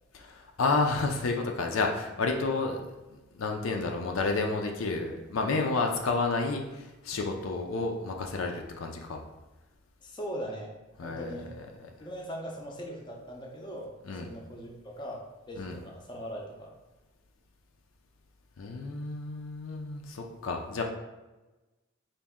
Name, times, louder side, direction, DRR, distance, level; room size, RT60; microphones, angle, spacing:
voice 1, 0.1-2.8 3.3-9.2 11.0-11.9 14.1-14.3 15.6-15.8 18.6-20.8, left 3 dB, 75° left, 3 dB, 0.5 m, -30 dB
voice 2, 10.0-10.7 11.0-11.5 12.0-16.7, equal, 20° left, -1 dB, 0.6 m, -40 dB
4.0 x 2.5 x 3.6 m, 1.1 s
head